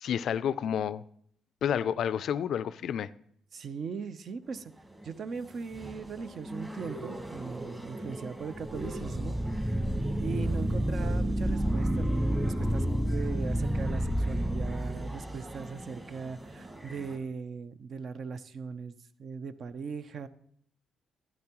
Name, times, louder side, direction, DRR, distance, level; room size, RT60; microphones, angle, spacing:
voice 1, 0.0-1.0 1.6-3.1, left 8 dB, 70° left, 0.3 m, -30 dB
voice 2, 3.5-4.7 5.0-9.4 10.2-20.3, right 5 dB, 55° right, 0.6 m, -39 dB
sound 1, 4.4-17.2, right 1 dB, 15° right, 1.6 m, -43 dB
sound 2, 8.6-15.6, right 1 dB, ahead, 0.4 m, -29 dB
12.0 x 9.6 x 3.0 m
cardioid pair, 90°, 0 cm